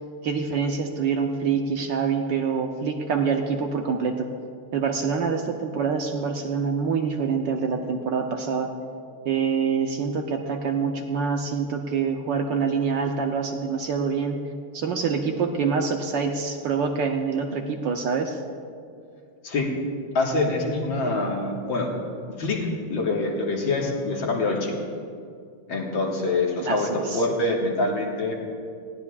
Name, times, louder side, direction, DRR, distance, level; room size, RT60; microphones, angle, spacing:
voice 1, 0.2-4.3 4.7-8.7 9.2-14.5 14.7-18.4 26.6-27.2, right 5 dB, 65° right, 3 dB, 1.3 m, -26 dB
voice 2, 20.1-21.9 22.4-24.7 25.7-28.3, left 2 dB, 65° left, -1 dB, 2.3 m, -25 dB
19.5 x 16.0 x 2.4 m, 2.3 s
omnidirectional pair, 2.4 m